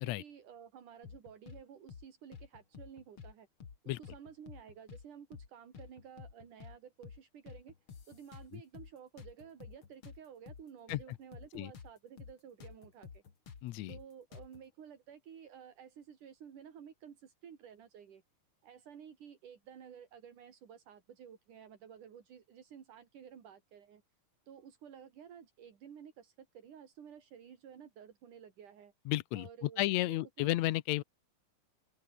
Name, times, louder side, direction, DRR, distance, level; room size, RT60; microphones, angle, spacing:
voice 1, 0.0-3.5 3.8-7.7 8.1-13.2 13.9-18.2 18.6-24.0 24.5-28.9 29.3-30.5, right 8 dB, 75° right, 4.2 m, -53 dB
sound 1, 1.0-1.6 1.9-2.1 2.3-3.3 3.6-3.8 4.0-5.1 5.3-5.5 5.7-6.8 7.0-7.2 7.5-8.9 9.2-11.9 12.2-12.3 12.6-14.6, left 6 dB, 45° left, 3.0 m, -51 dB
voice 2, 13.6-14.0 29.1-31.0, left 17 dB, 70° left, 1.9 m, -33 dB
open air
omnidirectional pair, 3.6 m